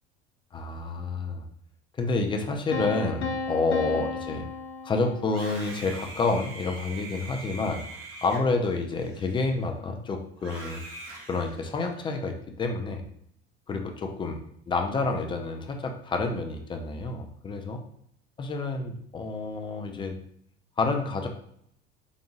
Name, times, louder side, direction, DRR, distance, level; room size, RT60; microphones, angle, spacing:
voice 1, 0.5-1.4 2.0-4.4 4.8-7.8 8.2-10.8 11.3-13.0 13.7-14.4 14.7-17.8 18.4-20.2 20.8-21.3, left 3 dB, 15° left, 4 dB, 0.4 m, -29 dB
Piano, 2.7-5.6, left 4 dB, 80° left, 0.5 m, -34 dB
Screaming, 5.3-9.7 10.4-12.1, right 2 dB, 45° right, 1.0 m, -43 dB
3.9 x 2.6 x 2.5 m, 0.69 s
figure-of-eight pair, 65°, 33 cm